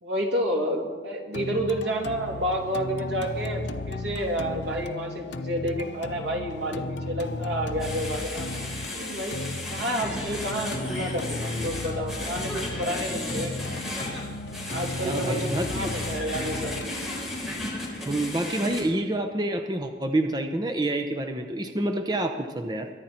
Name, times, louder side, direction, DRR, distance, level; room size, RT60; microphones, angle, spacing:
voice 1, 0.0-9.4 9.7-13.5 14.7-16.8, equal, 80° right, 0 dB, 2.8 m, -30 dB
sound 1, 1.3-19.3, left 2 dB, 85° left, 0.7 m, -35 dB
sound 2, 7.8-18.8, left 1 dB, ahead, 3.7 m, -35 dB
voice 2, 15.0-15.9 18.0-22.9, right 1 dB, 25° right, 5 dB, 0.7 m, -28 dB
23.0 x 10.5 x 4.4 m, 1.6 s
head